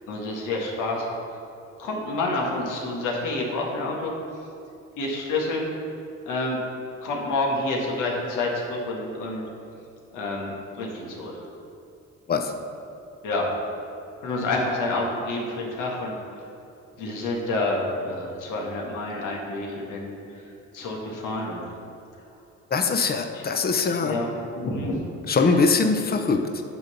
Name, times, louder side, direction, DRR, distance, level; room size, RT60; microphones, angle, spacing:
voice 1, 0.1-1.1 1.8-4.1 5.0-5.6 6.2-6.6 7.0-9.4 10.1-11.4 13.2-13.5 14.2-16.1 17.0-20.1 20.7-21.6 23.3-23.4 24.0-24.3 24.5-25.0 25.3-25.6, left 2 dB, 90° left, -2 dB, 1.7 m, -28 dB
voice 2, 22.7-24.2 25.3-26.6, left 4 dB, 30° left, 6 dB, 0.7 m, -22 dB
9.5 x 3.8 x 6.9 m, 2.6 s
cardioid pair, 90°, 30 cm